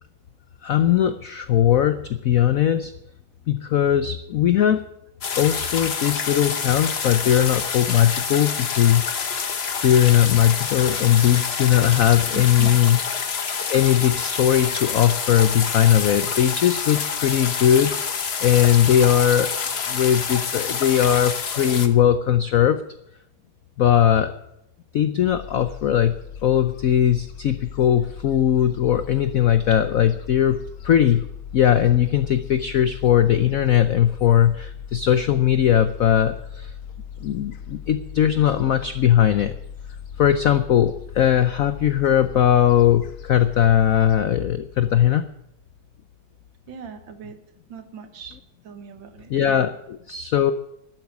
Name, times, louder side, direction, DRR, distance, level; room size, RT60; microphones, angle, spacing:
voice 1, 0.6-2.9 3.5-4.8 5.3-9.0 9.8-13.0 13.7-18.0 18.4-19.5 19.9-22.8 23.8-24.3 24.9-26.1 26.4-31.2 31.5-36.7 37.2-39.5 40.2-45.3 49.3-50.5, left 10 dB, 75° left, 11 dB, 0.8 m, -19 dB
sound 1, 5.2-21.9, left 6 dB, 40° left, 0.9 m, -27 dB
voice 2, 12.3-12.7 46.7-47.4 47.7-48.4 48.6-49.3, right 7 dB, 70° right, 9 dB, 2.1 m, -38 dB
Gull seagull, 25.3-44.2, left 8 dB, 90° left, 2.1 m, -38 dB
12.5 x 8.7 x 9.4 m, 0.81 s
omnidirectional pair, 2.2 m